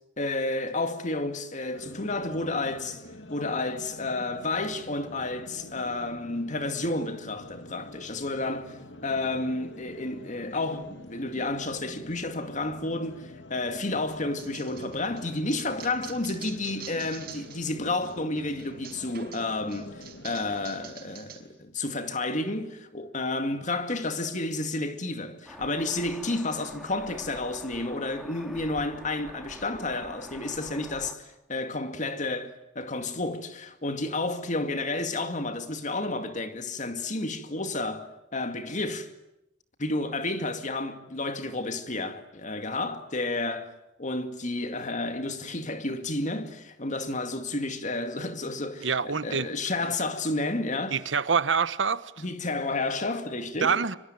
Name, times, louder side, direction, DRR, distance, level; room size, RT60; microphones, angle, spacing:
voice 1, 0.2-3.0 3.3-8.8 9.0-39.1 39.8-43.7 44.0-51.0 52.2-53.8, left 2 dB, 40° left, 2.3 m, -31 dB
sound 1, 1.7-20.8, left 1 dB, 70° left, 2.5 m, -46 dB
sound 2, 14.4-17.7 18.0-21.4, right 9 dB, 55° right, 5.4 m, -46 dB
sound 3, 25.4-31.1, equal, ahead, 2.4 m, -46 dB
voice 2, 48.8-49.5 50.9-52.0 53.6-54.0, right 5 dB, 90° right, 1.1 m, -25 dB
25.5 x 24.5 x 9.2 m
head